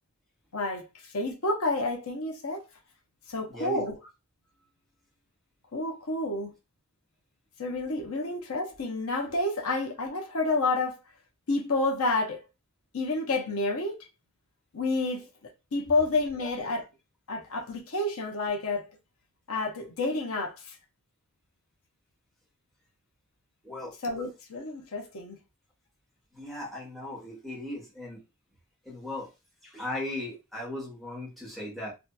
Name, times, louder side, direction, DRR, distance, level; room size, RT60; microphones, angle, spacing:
voice 1, 0.5-0.8 1.1-2.6 3.3-4.0 5.7-6.5 7.6-11.0 11.5-12.4 12.9-14.0 14.7-15.3 15.7-16.8 17.3-18.9 19.5-20.7 24.0-25.4, left 2 dB, 75° left, 0.8 m, -29 dB
voice 2, 3.5-3.8 23.6-23.9 26.3-28.2 28.8-29.3 29.6-31.9, left 2 dB, ahead, 1.1 m, -37 dB
2.7 x 2.4 x 2.2 m
head